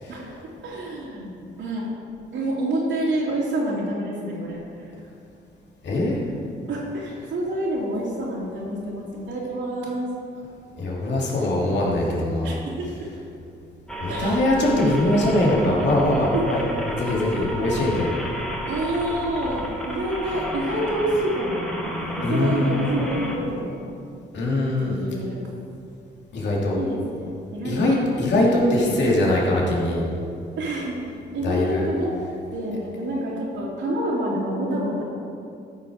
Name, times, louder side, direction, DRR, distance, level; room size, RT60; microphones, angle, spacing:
voice 1, 0.1-1.9 2.3-4.9 6.7-10.1 12.4-13.1 14.1-15.2 16.3-16.6 18.7-21.6 22.2-23.8 24.8-25.4 26.7-28.1 30.6-32.1 32.5-35.0, right 1 dB, 75° right, -7 dB, 2.8 m, -28 dB
voice 2, 5.8-6.2 10.8-12.6 14.0-16.6 17.0-18.1 22.2-22.7 24.3-25.0 26.3-26.8 27.6-30.0 31.4-31.8, left 1 dB, 65° left, -4 dB, 2.7 m, -22 dB
sound 1, 13.9-23.4, equal, 5° left, 1.7 m, -32 dB
13.5 x 6.3 x 5.0 m, 2.4 s
cardioid pair, 90°, 20 cm